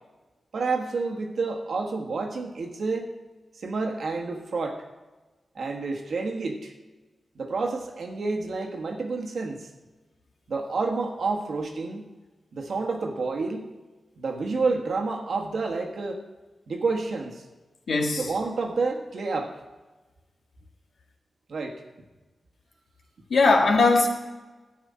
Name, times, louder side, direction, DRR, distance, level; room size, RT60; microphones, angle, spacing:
voice 1, 0.5-3.1 3.6-4.8 5.5-6.7 7.3-9.7 10.5-12.0 12.5-13.7 14.2-16.2 16.7-17.4 18.2-19.5 21.5-21.8, right 3 dB, 80° right, 2 dB, 1.5 m, -29 dB
voice 2, 17.9-18.3 23.3-24.1, left 3 dB, 80° left, 2 dB, 1.6 m, -20 dB
11.5 x 5.0 x 8.6 m, 1.2 s
wide cardioid pair, 75°, 0 cm